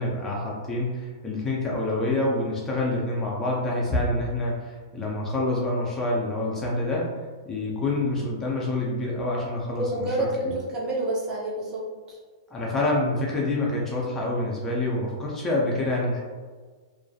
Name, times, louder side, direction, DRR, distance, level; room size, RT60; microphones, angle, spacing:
voice 1, 0.0-7.1 7.5-10.5 12.5-16.2, left 2 dB, 15° left, -4 dB, 0.5 m, -27 dB
voice 2, 9.8-12.2, right 1 dB, 30° right, -4 dB, 0.7 m, -29 dB
2.4 x 2.1 x 2.6 m, 1.5 s
hypercardioid pair, 130°, 2 cm